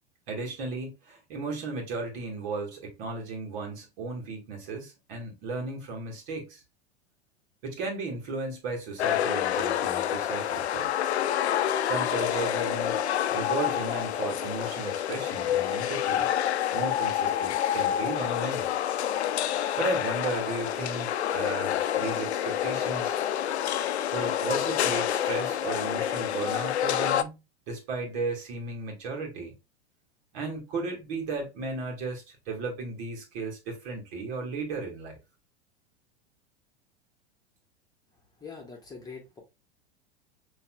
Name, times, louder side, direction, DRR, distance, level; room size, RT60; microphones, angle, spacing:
voice 1, 0.3-6.6 7.6-10.9 11.8-13.0 13.3-16.3 16.7-18.7 19.8-23.2 24.1-27.4 27.7-29.5 30.3-35.2, right 3 dB, 55° right, 1.9 m, -35 dB
sound 1, 9.0-27.2, left 10 dB, 80° left, 0.5 m, -28 dB
voice 2, 38.4-39.4, left 5 dB, 10° left, 1.4 m, -43 dB
5.7 x 3.2 x 2.2 m
hypercardioid pair, 95°, 32 cm